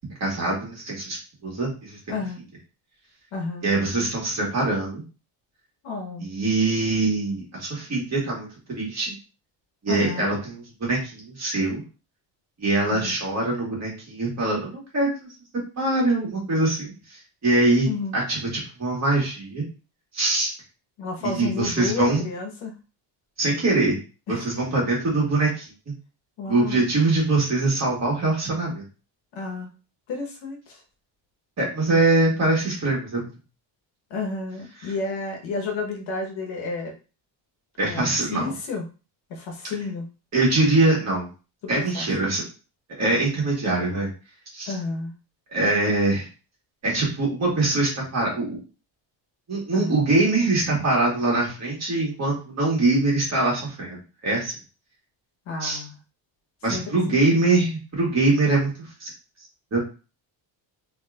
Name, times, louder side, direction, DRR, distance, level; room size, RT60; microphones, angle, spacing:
voice 1, 0.2-1.2 1.4-2.0 3.6-5.0 6.2-9.2 9.8-11.8 12.6-15.3 15.8-17.9 18.1-18.4 18.8-19.7 20.1-20.5 21.2-22.2 23.4-24.0 24.3-25.7 26.5-28.8 31.6-33.3 37.8-38.5 40.3-41.3 41.7-42.4 43.0-44.1 44.5-44.7 45.5-46.3 46.8-48.6 49.5-54.5 55.6-55.8 56.6-59.1 59.7-59.8, right 2 dB, 35° right, -3 dB, 1.9 m, -23 dB
voice 2, 2.1-2.4 3.3-3.7 5.8-6.3 9.9-10.3 12.9-13.1 17.8-18.2 21.0-22.7 24.3-24.5 26.4-26.8 29.3-29.7 30.1-30.8 34.1-36.9 37.8-38.9 39.3-40.1 41.7-42.1 44.7-45.1 49.7-49.9 55.5-56.0 56.7-57.2, left 4 dB, 75° left, 1 dB, 1.3 m, -31 dB
4.3 x 3.2 x 2.5 m, 0.33 s
cardioid pair, 145°, 47 cm